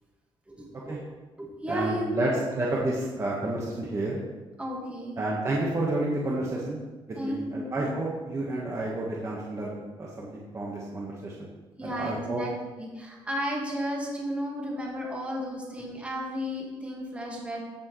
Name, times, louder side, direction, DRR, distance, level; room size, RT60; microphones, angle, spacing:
voice 1, 0.5-1.0 1.4-2.3 4.6-5.2 7.2-7.9 11.8-12.5 12.8-17.6, equal, 15° right, -2 dB, 1.8 m, -33 dB
voice 2, 1.7-2.3 2.6-4.2 5.2-6.8 7.1-11.5 11.8-12.4, right 2 dB, 30° right, -4 dB, 1.3 m, -30 dB
14.5 x 6.4 x 3.2 m, 1.2 s
cardioid pair, 135°, 10 cm